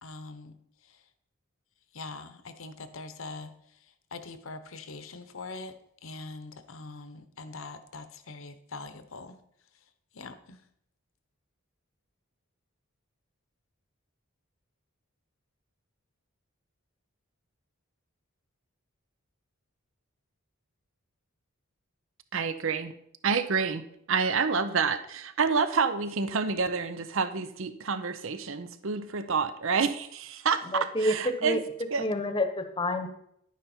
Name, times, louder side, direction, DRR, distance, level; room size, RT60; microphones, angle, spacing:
voice 1, 0.0-1.1 1.9-9.4 9.7-9.9 10.1-10.6, left 3 dB, 70° left, 10 dB, 0.9 m, -43 dB
voice 2, 22.3-22.9 23.2-23.8 24.1-31.6 31.9-32.1, right 5 dB, 65° right, 11 dB, 0.7 m, -28 dB
voice 3, 30.7-31.6 32.0-33.1, left 1 dB, 25° left, 8 dB, 1.0 m, -28 dB
11.0 x 9.3 x 4.4 m, 0.73 s
head